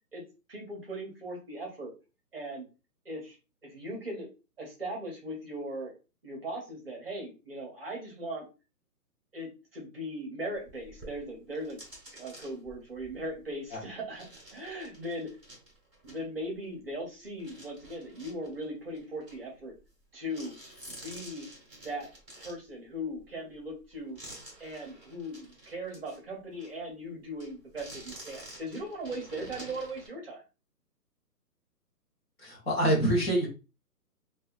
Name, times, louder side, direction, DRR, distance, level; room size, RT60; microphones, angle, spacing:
voice 1, 0.5-1.9 2.3-2.7 3.0-3.4 3.6-4.3 4.6-5.9 6.2-8.5 9.3-11.8 12.1-14.2 14.5-15.3 16.0-19.7 20.1-20.5 20.8-21.5 21.8-22.1 22.4-24.2 24.6-30.4, right 1 dB, 40° right, -1 dB, 0.7 m, -39 dB
sound 1, 10.5-17.0 17.4-20.0 20.3-26.2 26.5-26.7 27.4-30.1, right 1 dB, 5° left, 0.7 m, -50 dB
voice 2, 32.4-33.5, right 1 dB, 40° left, -3 dB, 0.8 m, -26 dB
2.7 x 2.2 x 2.2 m, 0.30 s
hypercardioid pair, 165°, 49 cm